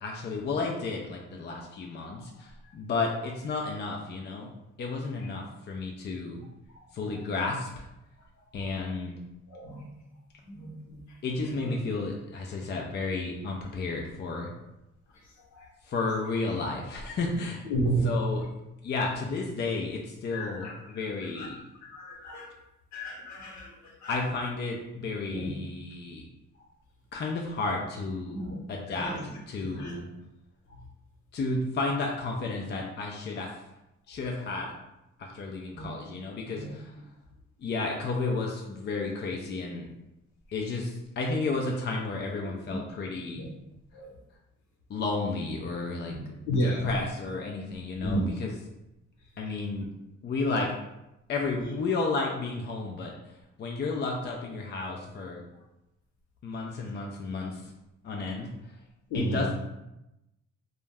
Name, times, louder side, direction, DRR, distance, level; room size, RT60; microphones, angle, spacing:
voice 1, 0.0-4.5 4.8-6.4 6.9-7.8 8.5-9.2 11.2-14.5 15.8-17.7 18.0-18.4 18.8-21.6 24.1-26.3 27.1-28.4 28.7-29.1 29.5-30.1 31.3-33.6 34.1-34.8 35.2-36.8 37.6-39.9 40.5-43.4 44.9-46.1 46.6-48.5 49.4-49.9 50.2-50.7 51.3-55.4 56.4-57.7 58.0-58.8 59.1-59.5, left 3 dB, 35° left, 0 dB, 0.4 m, -32 dB
voice 2, 8.2-8.7 9.5-10.0 10.4-11.7 15.1-15.7 17.6-18.5 19.0-19.1 20.3-21.5 21.8-22.5 22.9-24.2 25.3-25.5 26.5-26.6 28.3-28.6 28.9-30.0 30.7-30.9 35.6-35.9 36.5-36.8 40.5-40.6 42.4-42.7 43.1-43.5 43.9-44.2 46.1-46.2 46.5-47.0 48.0-48.3 49.2-49.6 51.4-51.6 59.1-59.5, right 1 dB, 70° left, -2 dB, 0.9 m, -34 dB
2.2 x 2.1 x 3.3 m, 0.91 s
cardioid pair, 90°, 30 cm